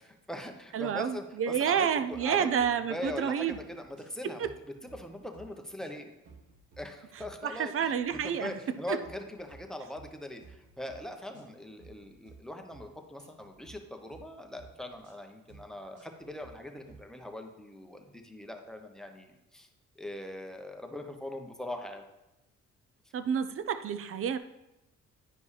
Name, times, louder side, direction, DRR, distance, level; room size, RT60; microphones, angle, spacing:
voice 1, 0.0-2.5 2.9-4.5 4.9-6.1 6.8-7.9 8.2-19.7 20.0-22.0, left 1 dB, ahead, 3 dB, 0.9 m, -41 dB
voice 2, 0.7-3.6 4.2-4.5 7.4-8.5 8.9-9.0 23.1-24.4, right 8 dB, 45° right, 11 dB, 0.5 m, -29 dB
sound 1, 2.1-2.7 3.0-3.2 3.5-4.1 4.4-5.5 5.8-6.8 7.2-7.4 7.6-8.2 8.6-8.7 9.0-9.6 9.9-10.1 10.4-11.0 11.3-11.5 11.8-12.4 12.7-12.9 13.2-13.8 14.1-14.3 14.6-15.1 15.5-15.7 15.9-16.5 16.9-17.0, right 5 dB, 85° right, 1.6 m, -54 dB
9.7 x 5.2 x 3.3 m, 0.93 s
cardioid pair, 90°, 30 cm